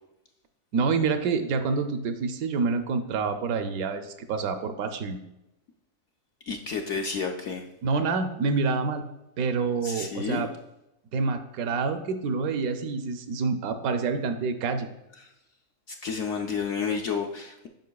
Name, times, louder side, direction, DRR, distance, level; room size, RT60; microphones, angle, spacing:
voice 1, 0.7-5.2 7.8-9.0 9.4-10.5 11.1-14.9, right 4 dB, 75° right, 8 dB, 1.0 m, -27 dB
voice 2, 6.5-7.6 9.8-10.5 15.2-15.3 15.9-17.7, left 5 dB, 65° left, 2 dB, 0.7 m, -31 dB
9.3 x 5.3 x 2.3 m, 0.89 s
omnidirectional pair, 1.6 m